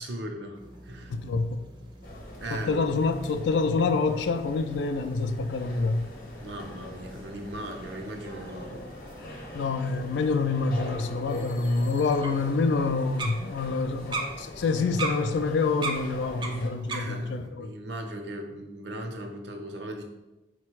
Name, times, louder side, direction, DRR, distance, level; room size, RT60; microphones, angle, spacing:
voice 1, 0.0-1.1 2.4-2.9 6.4-9.0 10.1-10.2 16.9-20.0, right 1 dB, 80° right, 0.6 m, -38 dB
sound 1, 0.5-17.5, right 3 dB, 25° right, 0.4 m, -42 dB
voice 2, 1.1-1.7 2.5-6.1 9.5-17.7, left 4 dB, 80° left, 0.3 m, -27 dB
sound 2, 2.0-16.7, left 1 dB, 50° left, 0.8 m, -42 dB
4.2 x 2.2 x 4.5 m
head